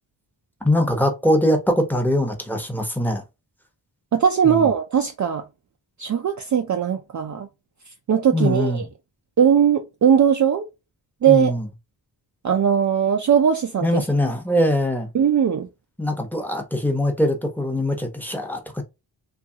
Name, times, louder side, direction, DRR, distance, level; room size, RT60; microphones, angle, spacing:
voice 1, 0.6-3.2 4.4-4.7 8.3-8.9 11.3-11.6 13.8-15.1 16.0-18.8, left 1 dB, 5° left, 0.8 m, -22 dB
voice 2, 4.1-5.4 6.0-7.5 8.1-8.9 9.4-10.7 11.2-11.5 12.4-14.0 15.1-15.7, right 8 dB, 45° right, 0.4 m, -19 dB
2.8 x 2.4 x 2.7 m
cardioid pair, 70°, 45 cm